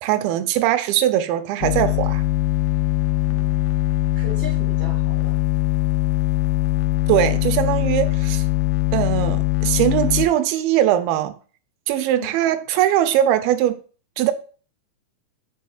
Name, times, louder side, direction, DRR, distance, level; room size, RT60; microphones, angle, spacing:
voice 1, 0.0-2.2 7.1-8.4 8.9-11.4 11.9-13.8 14.2-14.3, right 12 dB, 90° right, 2.4 m, -20 dB
sound 1, 1.6-10.3, left 16 dB, 80° left, 2.1 m, -21 dB
voice 2, 4.1-5.3 12.1-12.3, left 1 dB, 40° left, 0.6 m, -37 dB
7.3 x 5.9 x 2.3 m
omnidirectional pair, 4.2 m